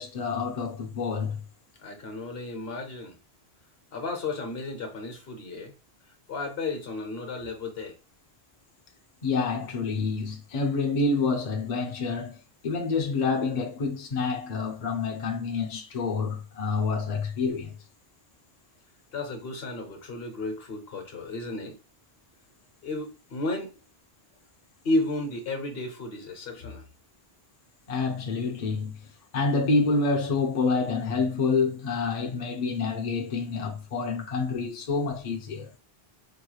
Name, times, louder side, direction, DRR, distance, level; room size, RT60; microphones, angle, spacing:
voice 1, 0.0-1.4 9.2-17.7 27.9-28.9 29.3-35.7, left 4 dB, 45° left, 0.7 m, -28 dB
voice 2, 1.8-3.2 3.9-5.7 6.3-8.0 19.1-21.7 22.8-23.7 24.8-26.8, left 2 dB, 70° left, 1.2 m, -33 dB
4.7 x 3.1 x 2.3 m
omnidirectional pair, 1.1 m